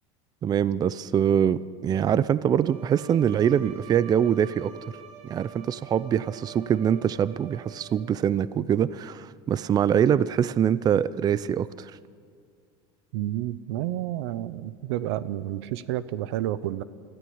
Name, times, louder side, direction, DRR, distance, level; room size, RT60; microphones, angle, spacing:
voice 1, 0.4-4.7 5.2-11.9, right 9 dB, 30° right, 18 dB, 0.5 m, -24 dB
Bowed string instrument, 2.5-8.3, right 9 dB, 45° right, 3.0 m, -47 dB
voice 2, 13.1-16.8, right 13 dB, 80° right, 17 dB, 0.8 m, -30 dB
22.5 x 15.0 x 8.7 m, 2.2 s
supercardioid pair, 120°, 14 cm